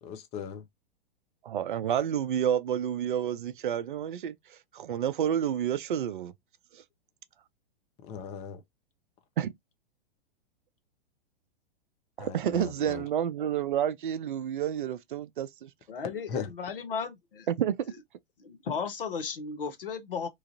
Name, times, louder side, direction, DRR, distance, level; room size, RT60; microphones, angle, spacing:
voice 1, 0.0-0.7 8.0-8.6 12.2-13.1 16.3-16.5, left 6 dB, 20° left, 0.5 m, -38 dB
voice 2, 1.4-4.4 4.7-6.3 6.7-6.8 9.4-9.5 12.2-15.7 17.5-17.7, right 9 dB, 60° right, 0.4 m, -29 dB
voice 3, 15.9-17.5 18.4-20.3, left 6 dB, 65° left, 0.8 m, -35 dB
3.1 x 2.4 x 2.6 m
figure-of-eight pair, 105°, 30 cm